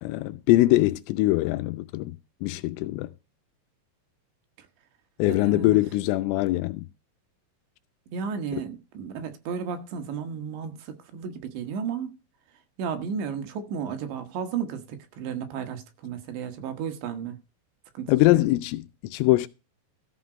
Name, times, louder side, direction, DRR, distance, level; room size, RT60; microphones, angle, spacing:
voice 1, 0.0-2.2 2.4-3.1 5.2-6.9 18.1-19.5, left 18 dB, 90° left, 3.3 m, -22 dB
voice 2, 5.3-5.8 8.1-12.1 12.8-17.4 18.0-18.4, right 6 dB, 70° right, 3.7 m, -33 dB
14.0 x 6.1 x 5.1 m
omnidirectional pair, 5.7 m